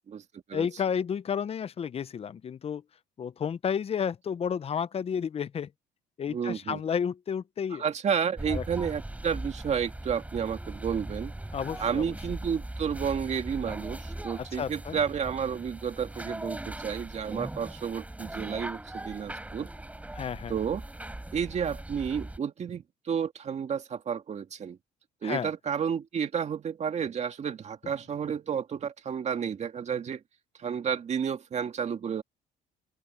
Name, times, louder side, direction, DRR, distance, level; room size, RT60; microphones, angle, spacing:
voice 1, 0.5-2.8 3.2-5.7 6.2-7.8 8.5-8.6 11.5-12.1 14.4-15.0 20.1-20.5 25.2-25.5, left 7 dB, 35° left, 0.7 m, -31 dB
voice 2, 6.3-6.8 7.8-11.3 11.8-19.7 20.5-20.8 21.3-24.8 25.2-30.2 30.6-32.2, right 7 dB, 40° right, 2.1 m, -31 dB
sound 1, 8.4-22.4, right 1 dB, 10° right, 6.9 m, -39 dB
open air
cardioid pair, 110°, 17 cm